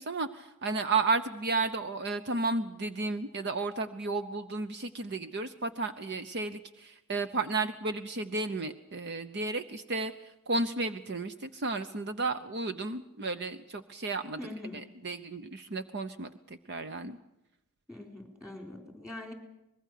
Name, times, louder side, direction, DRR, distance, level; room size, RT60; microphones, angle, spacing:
voice 1, 0.0-14.4 14.7-17.2, right 3 dB, 50° right, 10 dB, 0.9 m, -33 dB
voice 2, 14.4-14.8 17.9-19.3, left 2 dB, 5° right, 4 dB, 4.4 m, -43 dB
24.5 x 21.0 x 6.7 m, 0.92 s
head